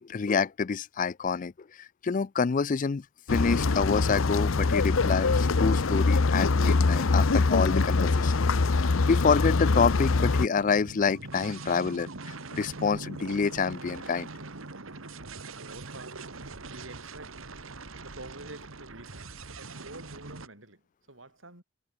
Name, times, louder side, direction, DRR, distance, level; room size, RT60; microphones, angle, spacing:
voice 1, 0.0-1.5 1.8-3.0 3.3-14.3, left 5 dB, 40° left, 0.4 m, -27 dB
sound 1, 3.3-10.5, left 3 dB, 85° left, 0.8 m, -24 dB
sound 2, 10.5-20.5, right 3 dB, 90° right, 2.1 m, -42 dB
voice 2, 14.4-17.4 17.9-21.6, right 2 dB, 70° right, 7.1 m, -49 dB
head